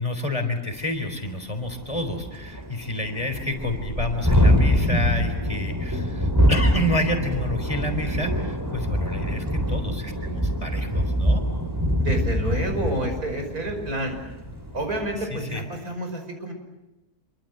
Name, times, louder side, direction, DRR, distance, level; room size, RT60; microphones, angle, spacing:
voice 1, 0.0-11.4 15.3-15.6, left 1 dB, 20° left, 6 dB, 3.9 m, -29 dB
Thunderstorm, 0.8-0.9 1.3-1.4 1.6-15.3, equal, 10° right, 3.5 m, -24 dB
voice 2, 9.0-9.5 12.0-14.2 14.7-16.5, right 1 dB, 70° right, 5 dB, 6.1 m, -29 dB
28.0 x 24.0 x 7.9 m, 0.99 s
omnidirectional pair, 1.6 m